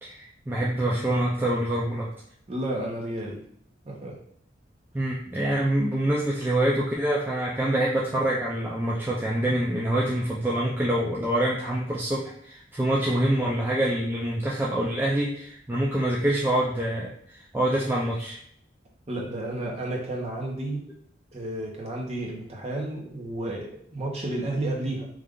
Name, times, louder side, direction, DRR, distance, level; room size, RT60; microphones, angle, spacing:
voice 1, 0.0-2.1 4.9-18.4, right 1 dB, 10° right, -4 dB, 0.4 m, -26 dB
voice 2, 2.5-3.4 3.8-4.2 19.1-20.8 21.3-25.1, right 1 dB, 35° right, -1 dB, 0.9 m, -31 dB
3.2 x 2.4 x 3.7 m, 0.65 s
head